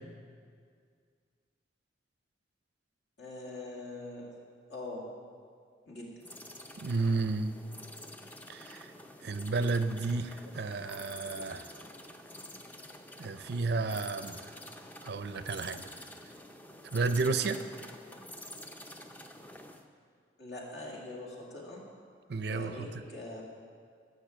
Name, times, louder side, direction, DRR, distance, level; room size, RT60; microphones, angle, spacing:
voice 1, 3.2-4.3 4.7-5.1 5.9-6.2 20.4-21.8 22.5-23.4, left 2 dB, 65° left, -2 dB, 2.3 m, -43 dB
sound 1, 6.2-19.8, left 1 dB, 10° left, 0.5 m, -48 dB
voice 2, 6.8-7.5 8.5-8.9 9.2-11.7 13.2-14.6 15.0-15.9 16.8-17.6 22.3-23.0, right 3 dB, 60° right, 11 dB, 0.5 m, -32 dB
12.0 x 6.5 x 7.5 m, 2.1 s
head